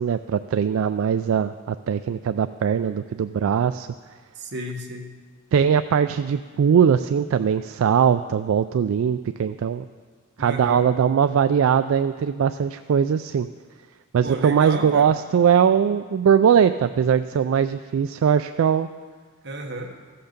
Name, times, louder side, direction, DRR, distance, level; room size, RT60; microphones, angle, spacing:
voice 1, 0.0-3.9 5.5-9.8 10.4-13.5 14.1-18.9, right 7 dB, 75° right, 10 dB, 0.3 m, -20 dB
voice 2, 4.3-5.1 10.4-10.8 14.2-15.1 19.4-19.9, right 1 dB, 55° right, 2 dB, 1.3 m, -32 dB
15.0 x 5.8 x 6.7 m, 1.5 s
head